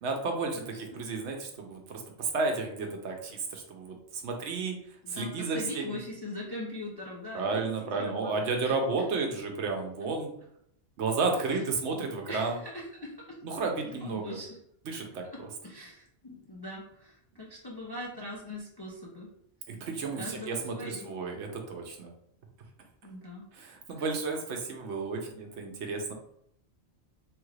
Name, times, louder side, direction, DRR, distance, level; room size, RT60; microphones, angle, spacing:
voice 1, 0.0-4.8 5.1-6.0 7.3-10.3 11.0-12.6 13.4-14.4 14.9-15.5 19.7-22.1 23.5-26.1, right 4 dB, 75° right, 2 dB, 1.0 m, -32 dB
voice 2, 0.5-1.1 5.0-8.8 11.5-11.6 12.3-13.4 14.0-14.6 15.3-15.4 15.6-19.3 20.2-21.0 23.0-23.5 24.0-24.1, left 1 dB, 40° left, -4 dB, 0.3 m, -41 dB
3.3 x 2.4 x 3.1 m, 0.72 s
omnidirectional pair, 1.2 m